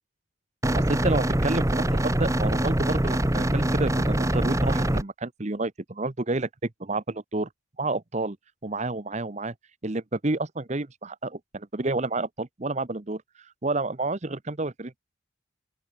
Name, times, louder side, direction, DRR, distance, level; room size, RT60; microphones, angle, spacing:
sound 1, 0.6-5.0, right 1 dB, 15° right, 1.1 m, -24 dB
voice 1, 0.7-7.5 7.8-8.4 8.6-9.5 9.8-13.2 13.6-15.0, right 2 dB, 35° right, 0.9 m, -29 dB
open air
head